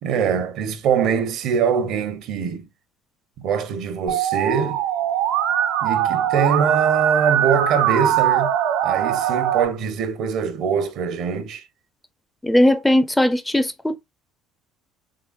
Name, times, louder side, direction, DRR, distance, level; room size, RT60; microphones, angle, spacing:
voice 1, 0.0-2.7 3.4-4.8 5.8-8.5 8.8-11.6, right 7 dB, 65° right, 0.8 m, -23 dB
Musical instrument, 4.1-9.6, right 10 dB, 80° right, 1.2 m, -21 dB
voice 2, 12.4-14.0, left 1 dB, 10° left, 0.4 m, -18 dB
3.8 x 3.3 x 2.3 m
supercardioid pair, 90°, 0 cm